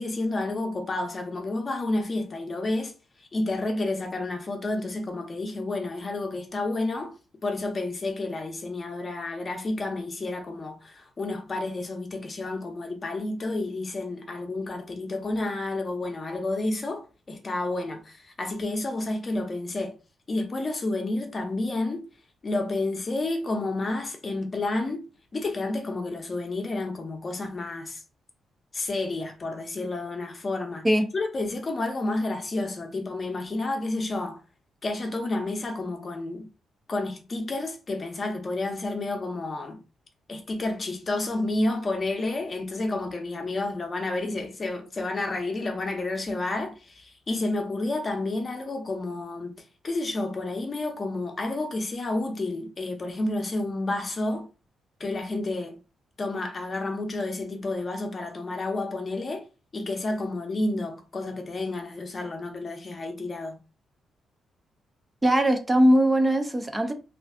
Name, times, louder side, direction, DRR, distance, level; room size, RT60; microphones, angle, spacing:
voice 1, 0.0-2.9 3.2-7.1 7.4-19.9 20.3-22.0 22.4-25.1 25.3-28.0 28.7-30.9 31.1-34.4 34.8-36.5 36.9-39.8 40.3-49.6 49.8-54.5 55.0-55.8 56.2-59.4 59.7-63.6, left 2 dB, 35° left, 0.7 m, -30 dB
voice 2, 65.2-66.9, equal, 15° right, 0.4 m, -20 dB
2.5 x 2.3 x 3.4 m
cardioid pair, 120°, 0 cm